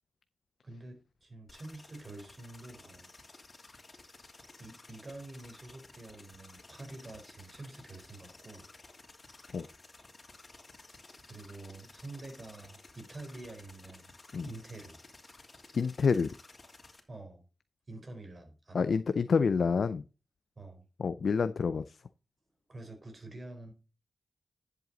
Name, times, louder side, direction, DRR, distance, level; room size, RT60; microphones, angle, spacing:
voice 1, 0.6-3.1 4.6-8.7 11.3-14.1 14.4-15.0 17.1-17.4 17.9-18.9 20.6-20.8 22.7-23.7, right 2 dB, 45° right, 5 dB, 4.3 m, -47 dB
sound 1, 1.5-17.0, left 3 dB, 40° left, 2.9 m, -55 dB
voice 2, 15.7-16.3 18.7-20.0 21.0-21.8, left 5 dB, 70° left, 12 dB, 0.5 m, -28 dB
11.0 x 7.7 x 4.0 m, 0.32 s
cardioid pair, 45°, 0 cm